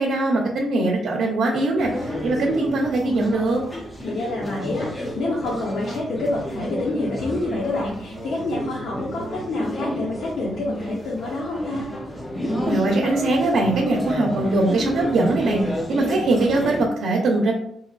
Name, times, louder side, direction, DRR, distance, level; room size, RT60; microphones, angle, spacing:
voice 1, 0.0-3.6 12.6-17.5, right 2 dB, 90° right, -2 dB, 0.8 m, -21 dB
sound 1, 1.8-16.9, equal, 15° left, 0.6 m, -30 dB
voice 2, 4.0-11.9, left 2 dB, 80° left, -4 dB, 0.7 m, -27 dB
4.6 x 3.0 x 2.4 m, 0.73 s
wide cardioid pair, 165°, 0 cm